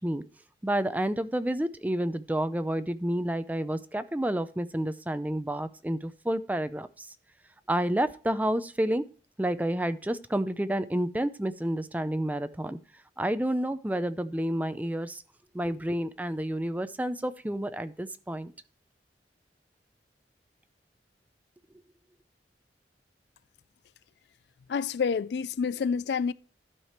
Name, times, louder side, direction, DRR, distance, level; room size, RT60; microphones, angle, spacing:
voice 1, 0.6-7.1 7.7-9.0 9.4-12.8 13.2-15.2 15.5-18.5, right 1 dB, 10° right, 0.4 m, -29 dB
voice 2, 24.7-26.3, left 6 dB, 65° left, 0.4 m, -28 dB
12.0 x 4.9 x 4.4 m
head